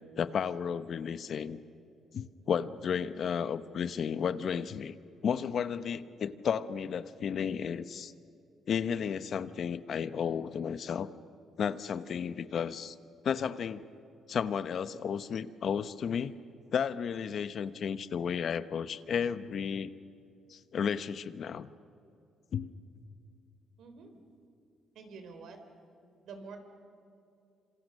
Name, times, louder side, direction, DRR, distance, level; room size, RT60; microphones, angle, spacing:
voice 1, 0.2-1.6 2.1-4.9 5.2-8.1 8.7-11.1 11.6-13.0 13.2-13.8 14.3-16.3 16.7-19.9 20.5-21.7 22.5-22.8, left 7 dB, 60° left, 13 dB, 0.9 m, -33 dB
voice 2, 23.8-24.2 25.0-25.6 26.2-26.6, right 4 dB, 75° right, 7 dB, 3.6 m, -47 dB
27.0 x 26.5 x 6.6 m, 2.6 s
cardioid pair, 90°, 0 cm